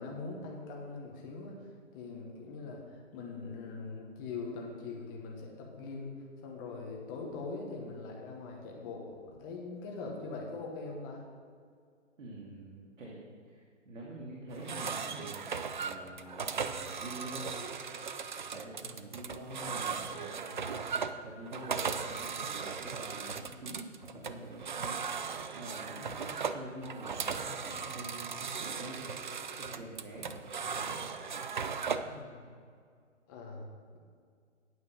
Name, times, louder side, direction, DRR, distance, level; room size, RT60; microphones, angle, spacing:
voice 1, 0.0-6.1 6.4-11.2 25.9-26.2 32.0-32.6 33.3-33.7 33.9-34.0, left 3 dB, 15° left, 0 dB, 1.1 m, -42 dB
voice 2, 12.2-13.2 13.5-17.6 18.5-25.0 25.5-29.0 29.6-30.3 30.6-31.0, right 1 dB, 80° right, -3 dB, 2.3 m, -46 dB
sound 1, 14.5-32.2, right 6 dB, 40° right, 0.4 m, -37 dB
9.3 x 8.7 x 5.4 m, 2.1 s
hypercardioid pair, 160°, 38 cm